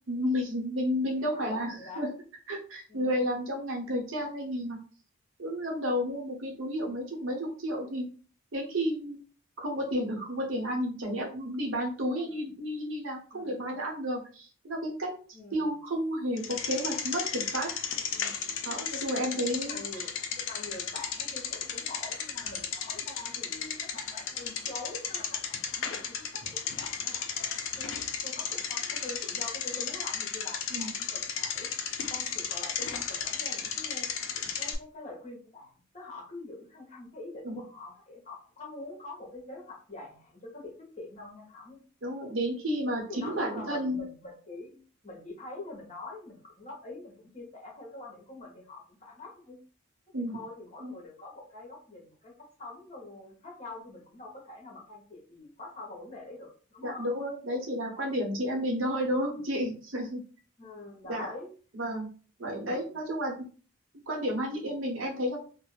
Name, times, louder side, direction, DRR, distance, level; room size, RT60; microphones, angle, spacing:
voice 1, 0.1-2.1 2.5-4.8 5.4-8.1 8.5-9.2 9.6-15.1 15.5-17.7 18.6-19.8 30.7-30.9 37.4-37.6 42.0-44.1 50.1-50.4 50.8-50.9 56.8-60.2 61.1-61.3 61.7-62.1 62.4-63.5 64.1-65.5, equal, 70° right, 0 dB, 0.8 m, -31 dB
voice 2, 1.1-2.1 2.9-3.4 12.1-12.4 13.3-13.7 15.3-15.8 18.1-18.5 19.5-26.0 26.3-27.3 27.8-31.7 32.1-34.1 34.4-41.8 43.1-49.6 50.2-57.2 60.6-61.5 62.5-63.0, left 2 dB, 35° left, -2 dB, 0.9 m, -45 dB
Bicycle, 16.4-34.8, left 7 dB, 65° left, 0.4 m, -34 dB
2.4 x 2.1 x 3.1 m, 0.39 s
head